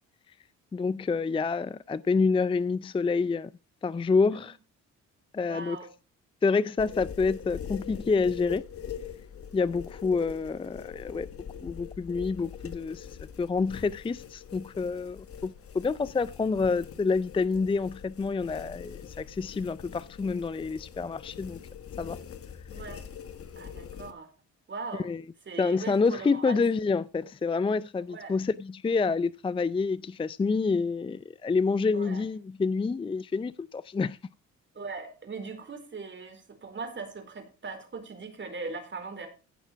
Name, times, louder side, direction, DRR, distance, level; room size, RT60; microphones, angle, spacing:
voice 1, 0.7-3.5 3.8-4.6 5.3-5.8 6.4-8.6 9.5-11.3 11.6-13.1 13.4-21.6 22.0-22.2 25.0-25.2 25.6-34.2, left 4 dB, 20° left, 0.4 m, -28 dB
voice 2, 5.5-5.9 22.7-23.0 23.6-24.3 24.7-25.1 25.5-26.6 28.1-28.4 31.9-32.2 34.7-39.3, right 4 dB, 40° right, 4.4 m, -40 dB
sound 1, 6.8-24.1, left 8 dB, 50° left, 1.4 m, -43 dB
16.0 x 6.2 x 4.6 m
cardioid pair, 90°, 30 cm